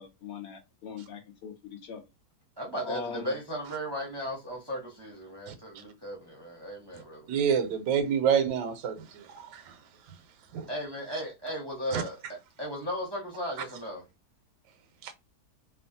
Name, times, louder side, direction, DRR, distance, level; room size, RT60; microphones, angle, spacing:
voice 1, 0.0-2.0 2.8-3.3, left 6 dB, 65° left, 0.6 m, -40 dB
voice 2, 2.6-7.3 10.7-14.0, equal, 35° right, 0.4 m, -36 dB
voice 3, 7.3-8.9 9.5-9.6 10.5-10.6 11.9-12.0 15.0-15.1, right 7 dB, 85° right, 1.2 m, -26 dB
3.0 x 2.2 x 2.6 m
omnidirectional pair, 1.8 m